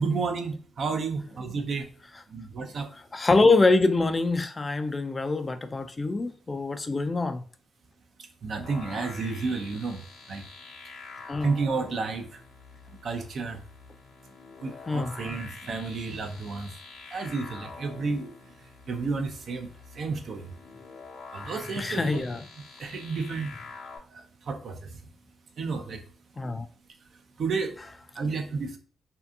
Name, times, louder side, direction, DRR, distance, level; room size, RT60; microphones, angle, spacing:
voice 1, 0.0-1.9 2.3-2.9 8.2-10.0 10.3-10.4 11.4-12.4 13.0-13.6 14.6-16.7 17.1-18.3 18.9-20.5 21.3-22.2 22.8-23.5 24.1-25.0 25.6-26.0 27.4-27.8 28.1-28.8, right 4 dB, 60° right, 0.5 m, -31 dB
voice 2, 3.1-7.4 11.3-11.5 14.9-15.1 21.8-22.5 26.4-26.7, left 3 dB, 35° left, 0.4 m, -24 dB
sound 1, 8.6-24.0, left 5 dB, 80° left, 0.8 m, -46 dB
2.6 x 2.4 x 2.3 m
supercardioid pair, 50°, 0 cm